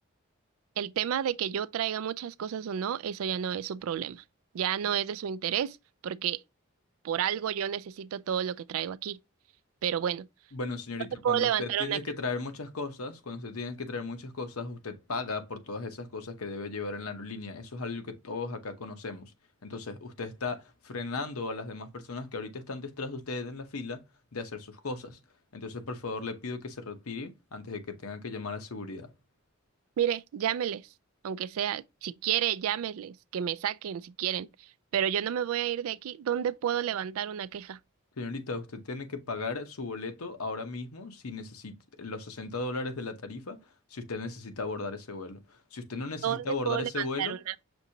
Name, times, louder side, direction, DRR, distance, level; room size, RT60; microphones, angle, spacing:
voice 1, 0.8-4.2 4.5-5.8 6.0-6.4 7.0-9.2 9.8-10.3 11.2-12.0 30.0-30.9 31.2-34.5 34.9-37.8 46.2-47.5, right 9 dB, 75° right, 0.3 m, -30 dB
voice 2, 10.5-19.3 19.6-24.0 24.3-25.2 25.5-29.1 38.2-43.6 43.9-47.4, left 3 dB, 85° left, 0.9 m, -36 dB
6.1 x 2.6 x 2.7 m
head